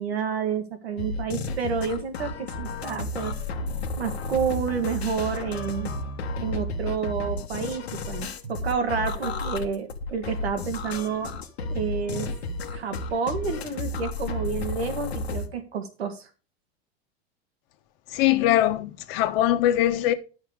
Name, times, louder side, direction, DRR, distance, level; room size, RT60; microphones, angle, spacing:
voice 1, 0.0-3.4 4.0-5.9 6.4-11.3 11.7-12.3 12.7-16.3, right 6 dB, 85° right, 1.9 m, -29 dB
sound 1, 1.0-15.5, left 2 dB, 90° left, 1.2 m, -32 dB
voice 2, 18.1-20.1, left 13 dB, 60° left, 1.2 m, -22 dB
10.0 x 6.5 x 4.9 m
hypercardioid pair, 95°, 31 cm